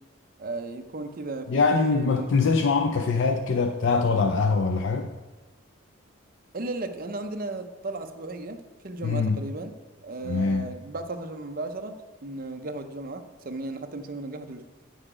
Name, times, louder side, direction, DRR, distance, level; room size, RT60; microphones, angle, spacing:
voice 1, 0.4-2.3 6.5-9.7 10.0-11.9 12.2-14.6, right 2 dB, 40° right, 6 dB, 0.7 m, -35 dB
voice 2, 1.5-5.1 9.0-9.4 10.2-10.7, left 4 dB, 60° left, 5 dB, 0.5 m, -23 dB
9.9 x 6.5 x 5.0 m, 1.2 s
head